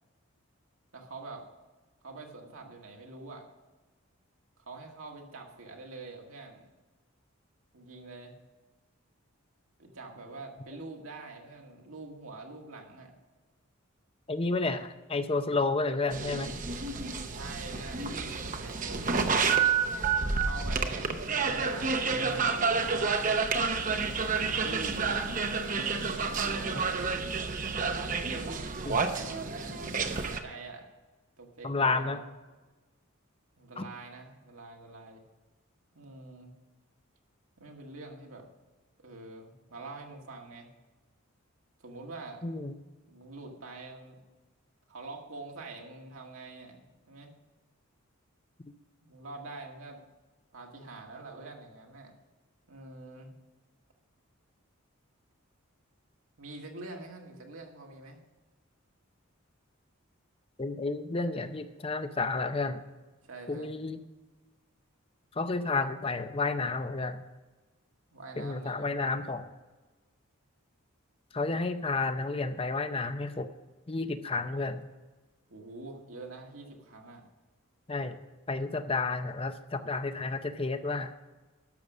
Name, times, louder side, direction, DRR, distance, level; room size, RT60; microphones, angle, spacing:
voice 1, 0.9-1.4 2.0-3.4 4.6-6.7 7.7-8.3 9.8-13.1 17.3-18.2 18.5-19.5 20.4-23.4 24.5-25.7 26.2-27.2 28.2-29.9 30.2-30.9 31.4-32.3 33.6-35.2 35.9-36.5 37.6-38.5 39.0-40.7 41.8-42.5 43.1-44.2 44.9-47.3 49.0-50.0 50.5-52.1 52.7-53.3 56.4-58.2 63.2-63.8 68.1-69.0 75.5-77.2, right 3 dB, 75° right, 1 dB, 1.8 m, -45 dB
voice 2, 14.3-16.5 28.9-29.0 31.6-32.2 33.8-33.9 42.4-42.7 60.6-62.8 63.5-64.0 65.4-67.2 68.4-69.5 71.3-73.5 73.9-74.8 77.9-78.2 78.5-81.1, left 3 dB, 25° left, 10 dB, 0.6 m, -31 dB
sound 1, 16.1-30.4, right 5 dB, 35° right, 0.8 m, -30 dB
12.0 x 6.8 x 6.1 m, 1.2 s
head